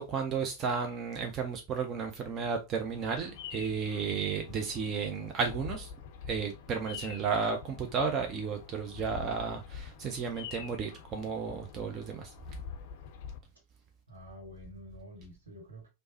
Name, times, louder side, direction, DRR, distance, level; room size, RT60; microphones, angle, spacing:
voice 1, 0.0-5.9 6.3-12.3, right 5 dB, 30° right, 0.4 m, -33 dB
Bird vocalization bird call bird song, 2.9-13.4, left 7 dB, 50° left, 0.4 m, -46 dB
voice 2, 14.1-15.9, left 1 dB, 75° right, 1.1 m, -48 dB
3.2 x 2.0 x 2.8 m
figure-of-eight pair, 90°, 0 cm